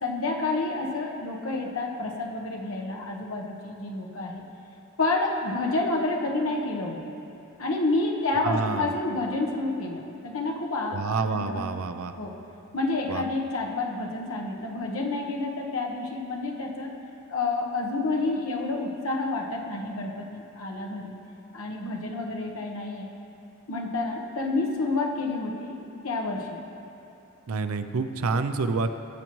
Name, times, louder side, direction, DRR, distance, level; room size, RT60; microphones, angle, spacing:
voice 1, 0.0-4.4 5.0-7.0 7.6-11.6 12.2-12.3 12.7-16.9 17.3-21.2 21.5-23.1 23.7-25.8 26.0-26.6, left 2 dB, 75° left, 0 dB, 1.1 m, -29 dB
voice 2, 8.4-8.9 10.9-12.1 13.1-13.2 27.5-28.9, right 4 dB, 85° right, 9 dB, 0.5 m, -28 dB
17.5 x 7.2 x 3.1 m, 2.8 s
head